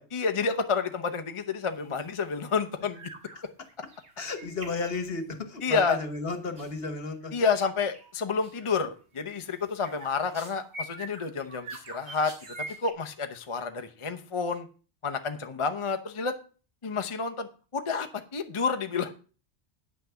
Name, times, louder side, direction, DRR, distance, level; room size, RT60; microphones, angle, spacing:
voice 1, 0.1-3.1 5.6-6.0 7.3-12.3 12.8-14.7 15.0-16.3 16.8-17.5 17.7-19.1, left 5 dB, 30° left, 7 dB, 0.7 m, -29 dB
sound 1, 1.8-2.1 2.4-2.7 2.9-3.4 3.7-5.4 6.6-6.7 7.2-7.6 7.9-8.1 8.4-8.7 9.1-12.9, right 2 dB, 70° right, 2.0 m, -44 dB
voice 2, 4.2-7.3, left 3 dB, 55° left, 8 dB, 1.4 m, -33 dB
9.5 x 5.9 x 6.8 m, 0.38 s
omnidirectional pair, 1.2 m